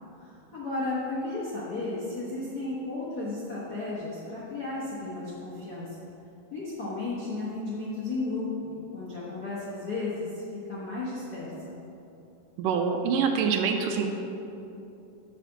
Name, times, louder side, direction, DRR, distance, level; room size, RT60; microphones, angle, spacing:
voice 1, 0.2-6.0 6.5-11.8, left 2 dB, 90° left, -9 dB, 0.8 m, -34 dB
voice 2, 12.6-14.1, right 6 dB, 80° right, 4 dB, 2.1 m, -25 dB
8.3 x 4.2 x 6.9 m, 2.8 s
omnidirectional pair, 4.0 m